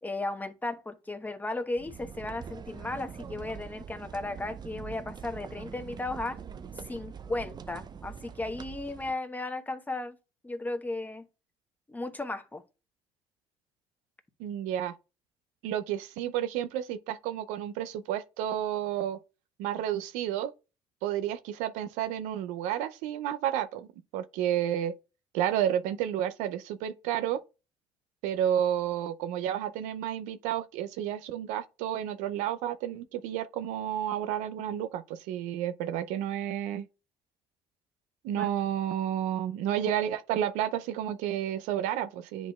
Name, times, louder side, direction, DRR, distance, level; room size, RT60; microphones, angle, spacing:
voice 1, 0.0-6.4 6.8-10.2 10.4-11.3 11.9-12.6 38.3-38.5, left 2 dB, 15° left, 1.0 m, -35 dB
sound 1, 1.8-9.1, right 7 dB, 35° right, 0.5 m, -43 dB
voice 2, 14.4-14.9 15.6-19.2 19.6-20.5 21.0-23.9 24.1-24.9 25.3-27.4 28.2-36.9 38.2-42.5, right 11 dB, 80° right, 0.5 m, -31 dB
10.0 x 3.9 x 2.3 m
supercardioid pair, 65°, 13 cm